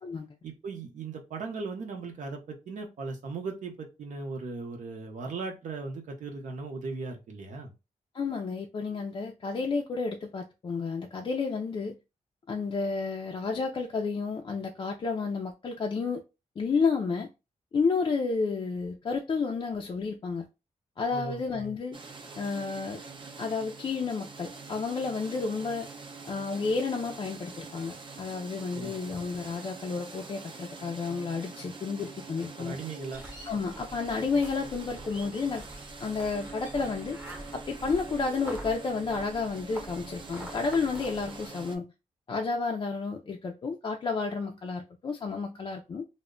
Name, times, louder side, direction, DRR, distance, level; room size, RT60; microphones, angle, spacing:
voice 1, 0.4-7.7 21.1-21.4 28.7-28.9 32.6-33.2, right 4 dB, 75° right, 0.7 m, -37 dB
voice 2, 8.1-12.0 12.5-16.2 16.6-17.3 17.7-20.5 21.0-22.0 22.4-23.0 23.4-25.9 26.3-32.8 33.5-35.6 36.0-37.2 37.5-41.9 42.3-46.1, left 4 dB, 40° left, 0.3 m, -31 dB
sound 1, 21.9-41.8, right 4 dB, 40° right, 0.5 m, -45 dB
sound 2, 33.1-41.5, right 1 dB, 15° right, 0.8 m, -45 dB
2.1 x 2.1 x 3.6 m
wide cardioid pair, 120°, 13 cm